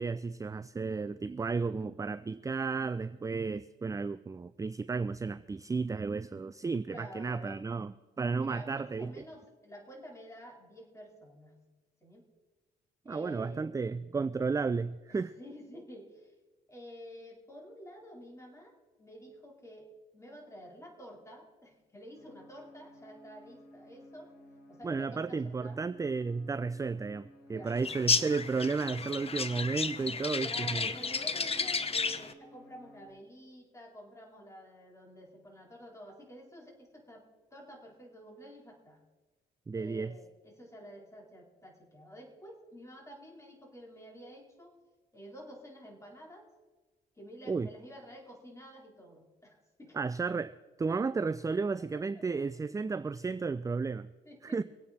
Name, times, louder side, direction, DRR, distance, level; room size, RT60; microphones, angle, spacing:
voice 1, 0.0-9.1 13.1-15.3 24.8-30.9 39.7-40.1 47.5-47.7 49.9-50.5 50.8-54.1 54.4-54.6, right 4 dB, 15° right, 14 dB, 0.4 m, -33 dB
voice 2, 6.9-7.6 8.3-11.6 12.0-12.3 13.1-13.7 15.1-16.3 16.7-24.3 24.7-25.8 27.5-28.2 30.4-39.0 39.8-44.7 45.1-46.5 47.2-50.1 50.9-51.0 51.9-52.4 54.3-54.6, equal, 15° left, -1 dB, 4.0 m, -50 dB
sound 1, 22.1-33.1, left 1 dB, 80° left, 4.8 m, -56 dB
sound 2, 27.8-32.3, left 5 dB, 30° left, 0.9 m, -32 dB
23.5 x 8.7 x 4.2 m, 1.2 s
cardioid pair, 90°, 20 cm